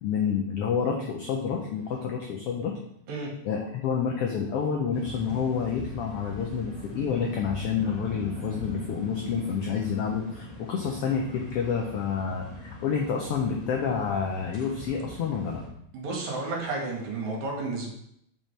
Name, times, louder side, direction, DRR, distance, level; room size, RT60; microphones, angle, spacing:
voice 1, 0.0-2.8 3.4-15.6, left 6 dB, 90° left, 1 dB, 1.3 m, -29 dB
sound 1, 4.9-15.7, left 1 dB, 20° left, 1.1 m, -40 dB
voice 2, 15.9-17.9, right 3 dB, 70° right, -2 dB, 2.9 m, -32 dB
7.5 x 6.0 x 3.3 m, 0.73 s
omnidirectional pair, 3.5 m